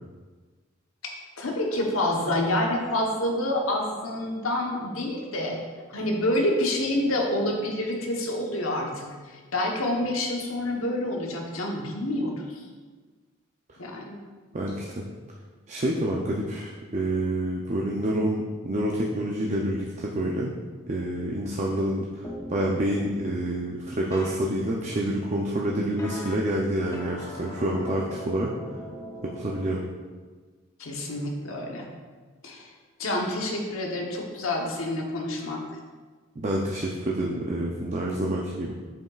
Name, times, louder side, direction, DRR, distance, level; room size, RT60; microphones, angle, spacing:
voice 1, 1.0-5.6 5.9-12.6 13.8-14.2 30.8-31.9 32.4-32.7 33.0-35.6, left 1 dB, 85° left, 1 dB, 1.0 m, -28 dB
voice 2, 14.5-15.0 15.7-20.5 20.9-22.2 22.5-28.5 29.2-29.8 36.4-38.7, right 1 dB, 35° right, -1 dB, 0.5 m, -28 dB
sound 1, 22.2-22.6 24.1-24.4 26.0-26.3 26.9-29.7, equal, 15° left, 0.5 m, -39 dB
7.6 x 5.5 x 2.4 m, 1.4 s
head